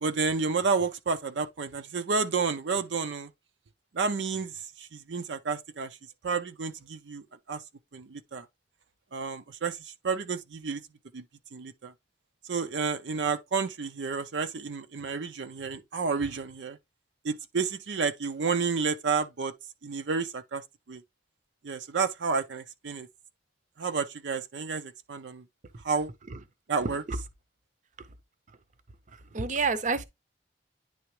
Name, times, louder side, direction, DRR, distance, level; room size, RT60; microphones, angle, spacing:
voice 1, 0.0-3.3 3.9-6.0 6.2-7.6 7.9-8.5 9.1-10.8 11.1-11.2 11.5-11.9 12.4-16.8 17.2-19.5 19.8-21.0 21.6-23.1 23.8-25.4 25.8-26.1 26.7-27.0, right 5 dB, 85° right, 0.6 m, -30 dB
voice 2, 29.1-30.0, right 4 dB, 45° right, 0.6 m, -29 dB
9.8 x 3.4 x 3.2 m
head